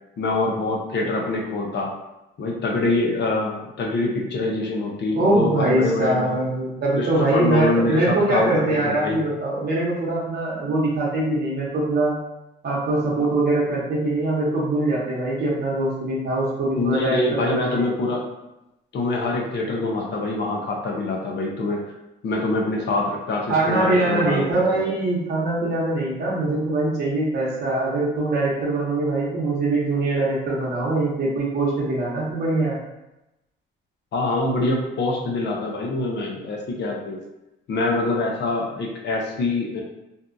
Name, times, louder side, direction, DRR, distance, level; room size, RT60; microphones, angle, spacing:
voice 1, 0.2-1.9 2.4-6.4 7.0-9.2 16.7-18.3 18.9-21.8 22.2-24.9 34.1-37.2 37.7-39.8, left 2 dB, 60° left, 0 dB, 0.7 m, -25 dB
voice 2, 5.2-12.2 12.6-17.9 23.5-32.8, right 2 dB, 55° right, -5 dB, 0.9 m, -23 dB
2.6 x 2.3 x 2.6 m, 0.91 s
cardioid pair, 90°, 20 cm